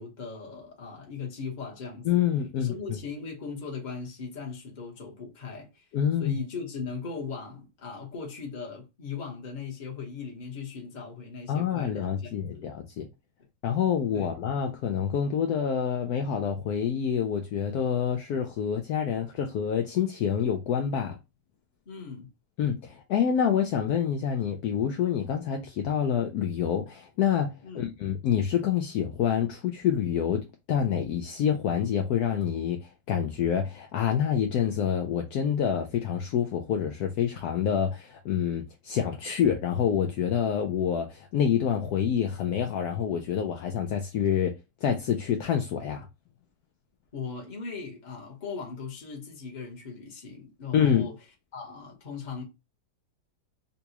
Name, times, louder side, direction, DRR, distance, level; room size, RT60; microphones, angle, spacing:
voice 1, 0.0-2.2 2.6-5.9 6.2-12.7 14.1-14.3 21.9-22.3 27.6-27.8 47.1-51.1 51.5-52.4, left 5 dB, 35° left, 0.8 m, -38 dB
voice 2, 2.0-3.0 5.9-6.4 11.5-13.1 13.6-21.2 22.6-44.5 44.8-46.1 50.7-51.1, left 8 dB, 85° left, 0.8 m, -27 dB
4.0 x 2.3 x 2.8 m
omnidirectional pair, 2.2 m